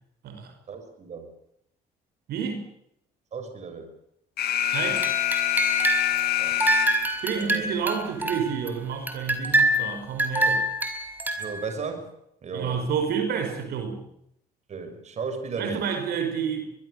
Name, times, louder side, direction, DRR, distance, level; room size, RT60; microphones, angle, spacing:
voice 1, 0.7-1.3 3.3-3.9 6.4-6.6 7.3-7.7 11.4-12.1 12.4-12.8 14.7-15.9, right 5 dB, 40° right, 7 dB, 6.6 m, -35 dB
voice 2, 2.3-2.7 4.7-5.1 7.1-10.6 12.5-14.0 15.6-16.6, right 6 dB, 70° right, 5 dB, 5.5 m, -29 dB
Alarm, 4.4-7.3, left 12 dB, 70° left, 2.1 m, -25 dB
sound 1, 4.7-6.2 6.6-8.7 9.1-11.7, right 1 dB, 10° right, 4.9 m, -26 dB
24.0 x 22.0 x 6.8 m, 0.76 s
cardioid pair, 110°, 17 cm